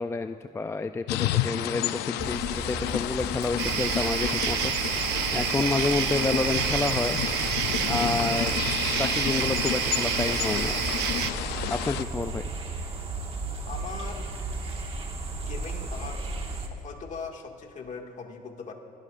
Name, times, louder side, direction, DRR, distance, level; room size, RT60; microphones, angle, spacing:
voice 1, 0.0-5.0 5.3-7.2 7.8-8.7 9.0-11.0 11.7-12.5, left 3 dB, 15° left, 8 dB, 0.4 m, -29 dB
sound 1, 1.1-12.0, left 13 dB, 85° left, 0.5 m, -31 dB
sound 2, 2.2-16.7, right 3 dB, 35° right, 1.7 m, -35 dB
sound 3, 3.6-11.3, right 10 dB, 85° right, 0.8 m, -29 dB
voice 2, 13.6-14.3 15.3-16.2 16.7-18.7, left 5 dB, 45° left, 2 dB, 2.0 m, -40 dB
29.5 x 16.5 x 2.5 m, 2.4 s
cardioid pair, 110°, 17 cm